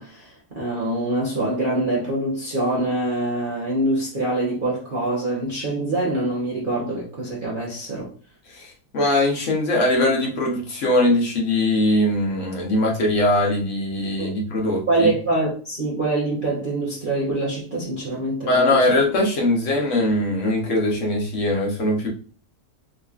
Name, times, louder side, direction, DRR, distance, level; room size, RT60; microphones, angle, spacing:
voice 1, 0.0-8.1 14.2-14.3 14.9-18.8, right 2 dB, 40° right, 0.9 m, -24 dB
voice 2, 8.5-15.1 18.5-22.1, left 1 dB, 50° left, 1.2 m, -21 dB
3.8 x 2.9 x 2.4 m
omnidirectional pair, 1.8 m